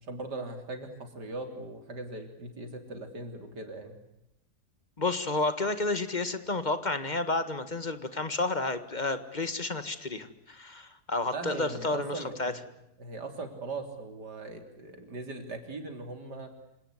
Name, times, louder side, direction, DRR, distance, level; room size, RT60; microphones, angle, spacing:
voice 1, 0.0-4.0 11.3-12.6 13.0-16.5, right 2 dB, 85° right, 6 dB, 4.1 m, -39 dB
voice 2, 5.0-12.5, left 2 dB, 30° left, 11 dB, 1.7 m, -31 dB
27.0 x 18.0 x 9.8 m, 0.88 s
omnidirectional pair, 1.7 m